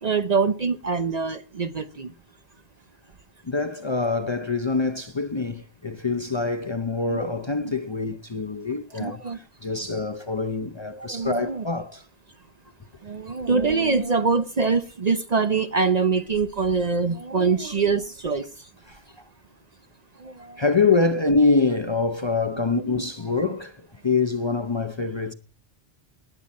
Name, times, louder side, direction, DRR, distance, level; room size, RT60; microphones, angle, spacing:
voice 1, 0.0-2.1 7.1-7.3 8.9-9.4 11.0-11.6 13.0-18.7 20.2-20.6 22.7-23.0, right 4 dB, 45° right, 0.7 m, -24 dB
voice 2, 3.4-12.0 18.9-19.2 20.6-25.3, left 3 dB, 30° left, 0.6 m, -25 dB
19.0 x 8.9 x 4.2 m
omnidirectional pair, 1.1 m